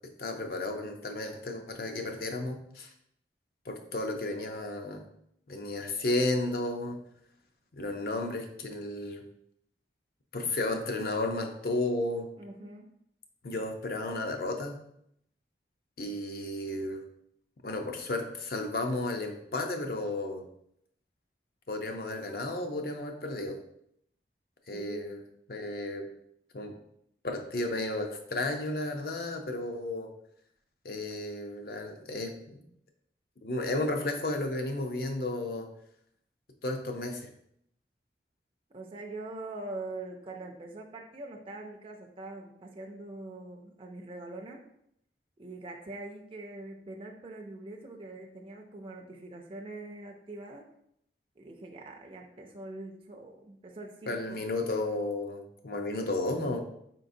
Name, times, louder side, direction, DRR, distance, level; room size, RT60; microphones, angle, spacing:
voice 1, 0.2-2.9 3.7-5.1 5.5-7.0 7.7-9.2 10.3-12.3 13.4-14.8 16.0-17.0 17.6-20.4 21.7-23.6 24.7-25.2 25.5-26.1 26.5-26.7 27.2-30.1 30.8-32.6 33.4-35.7 36.6-37.3 54.1-56.6, left 2 dB, 55° left, 4 dB, 0.6 m, -33 dB
voice 2, 12.4-12.9 24.7-25.2 38.7-44.6 45.4-50.7 51.4-54.4, right 2 dB, 30° right, 1 dB, 0.4 m, -43 dB
4.8 x 3.8 x 2.6 m, 0.74 s
head